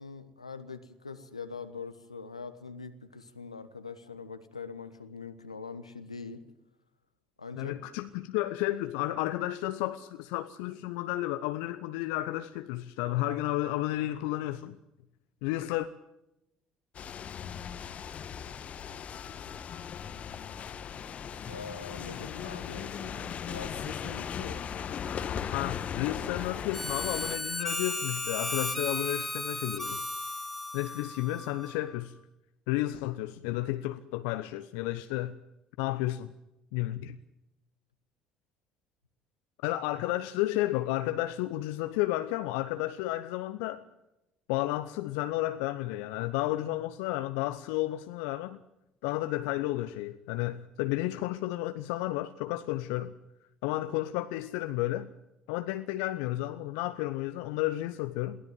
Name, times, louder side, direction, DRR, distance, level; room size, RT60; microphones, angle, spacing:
voice 1, 0.0-6.4 7.4-7.8 21.5-24.7, left 4 dB, 90° left, 1.2 m, -43 dB
voice 2, 7.6-14.8 15.4-15.9 25.5-30.0 30.7-32.1 32.7-35.3 35.8-36.3 36.7-37.2 39.6-43.8 44.5-48.6 49.0-53.1 53.6-55.1 55.5-58.4, left 16 dB, 65° left, 0.8 m, -32 dB
sound 1, 16.9-27.4, left 8 dB, 45° left, 1.3 m, -38 dB
Harmonica, 26.7-31.9, left 1 dB, 5° left, 1.9 m, -35 dB
22.5 x 16.5 x 9.1 m
figure-of-eight pair, 55°, 3 cm